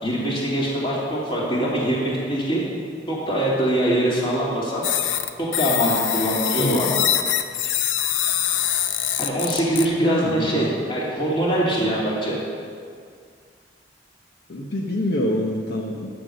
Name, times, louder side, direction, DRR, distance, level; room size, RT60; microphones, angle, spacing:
voice 1, 0.0-2.6 3.1-4.8 5.4-6.9 9.2-12.4, right 1 dB, 30° left, -5 dB, 2.8 m, -23 dB
sound 1, 4.8-9.8, left 10 dB, 90° left, 0.6 m, -24 dB
voice 2, 10.0-10.7 14.5-16.1, left 1 dB, 60° left, -1 dB, 0.9 m, -25 dB
10.5 x 7.2 x 6.7 m, 2.1 s
head